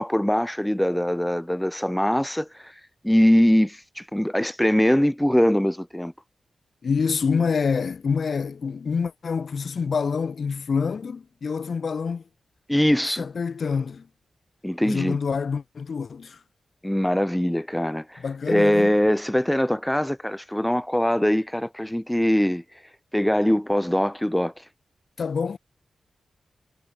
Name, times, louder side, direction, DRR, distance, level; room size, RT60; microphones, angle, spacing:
voice 1, 0.0-2.7 3.0-6.1 12.7-13.3 14.6-15.2 16.8-22.6 23.1-24.5, equal, 5° left, 1.3 m, -22 dB
voice 2, 6.8-12.2 13.2-14.1 14.8-16.4 18.2-18.9 25.2-25.6, left 5 dB, 60° left, 1.2 m, -26 dB
wide cardioid pair, 105°, 0 cm